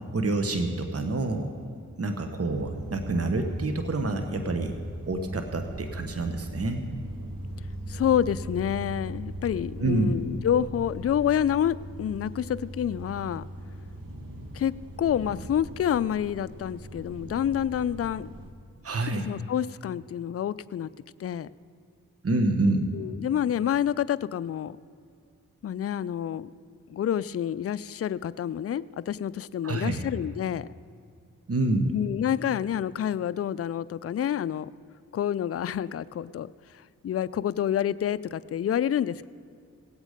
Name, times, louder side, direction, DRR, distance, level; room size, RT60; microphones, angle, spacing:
voice 1, 0.1-1.5 2.0-4.7 5.1-6.8 9.8-10.1 18.8-19.3 22.2-22.9 29.6-30.0 31.5-31.9, right 2 dB, 45° right, 6 dB, 1.2 m, -27 dB
sound 1, 2.5-18.5, right 1 dB, 80° right, 1.7 m, -40 dB
voice 2, 7.9-13.4 14.5-18.3 19.3-20.9 21.2-21.5 22.9-24.8 25.6-26.5 26.9-30.7 31.9-34.7 35.1-36.5 37.0-39.3, left 9 dB, 45° left, 16 dB, 0.4 m, -28 dB
18.0 x 8.2 x 5.1 m, 2.3 s
cardioid pair, 40°, 34 cm